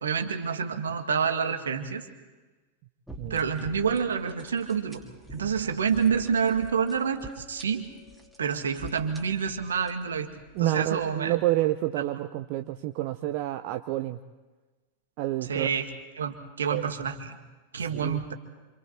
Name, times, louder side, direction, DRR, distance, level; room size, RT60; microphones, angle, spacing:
voice 1, 0.0-2.1 3.3-5.0 5.3-7.9 8.4-10.3 10.6-11.4 15.5-15.9 16.2-17.4 17.7-18.3, right 6 dB, 70° right, 6 dB, 1.9 m, -28 dB
sound 1, 3.1-11.2, right 1 dB, ahead, 2.8 m, -47 dB
Chink clink, 6.3-10.5, left 9 dB, 50° left, 6.1 m, -57 dB
voice 2, 10.5-14.2 15.2-15.7 16.7-16.9 17.9-18.2, right 16 dB, 45° right, 7 dB, 0.8 m, -29 dB
28.0 x 26.5 x 4.4 m, 1.2 s
figure-of-eight pair, 90°, 0 cm